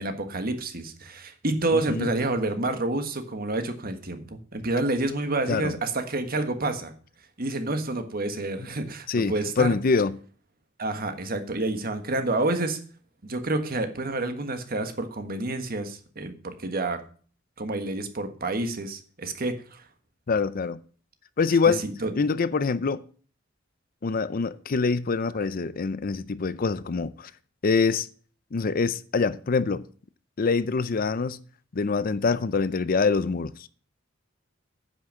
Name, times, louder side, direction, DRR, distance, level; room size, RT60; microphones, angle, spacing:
voice 1, 0.0-6.9 7.4-9.7 10.8-12.8 13.2-17.0 17.6-19.8 21.7-22.1, right 2 dB, 50° right, 1.5 m, -29 dB
voice 2, 1.7-2.1 5.5-5.8 9.1-10.2 20.3-20.8 21.4-21.8 22.2-23.0 24.0-27.3 27.6-28.1 28.5-29.8 30.4-31.4 31.7-33.7, left 4 dB, 45° left, 0.5 m, -25 dB
9.6 x 6.2 x 7.4 m
head